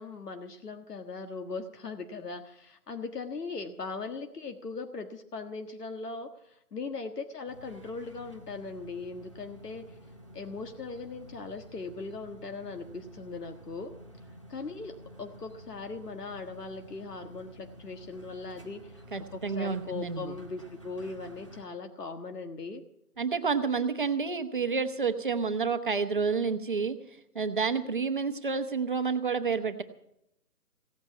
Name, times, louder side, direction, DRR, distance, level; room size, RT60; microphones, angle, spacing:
voice 1, 0.0-10.0 10.3-13.9 14.5-19.0 19.3-22.8, left 4 dB, 80° left, 6 dB, 1.6 m, -39 dB
sound 1, 7.5-21.6, equal, 20° left, 0.7 m, -50 dB
voice 2, 19.1-20.3 23.2-27.0 27.3-29.8, right 5 dB, 35° right, 8 dB, 0.9 m, -29 dB
16.5 x 8.8 x 8.3 m, 0.79 s
hypercardioid pair, 170°, 46 cm